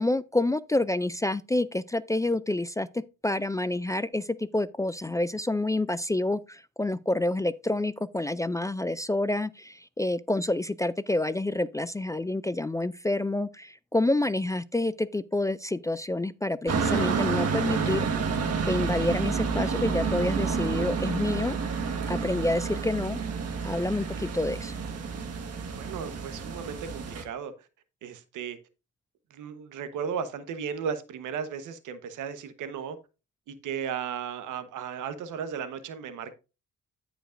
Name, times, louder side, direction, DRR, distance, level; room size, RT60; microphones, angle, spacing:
voice 1, 0.0-18.1 18.7-21.6 22.1-23.2 23.6-24.7, left 2 dB, 10° left, 0.3 m, -28 dB
On a country road (from Piana degli Albanesi to Pioppo), 16.7-27.2, right 5 dB, 55° right, 1.5 m, -29 dB
voice 2, 25.8-27.5 28.0-28.6 29.3-33.0 33.5-36.3, right 7 dB, 85° right, 1.1 m, -35 dB
15.0 x 5.1 x 2.5 m
cardioid pair, 90°, 30 cm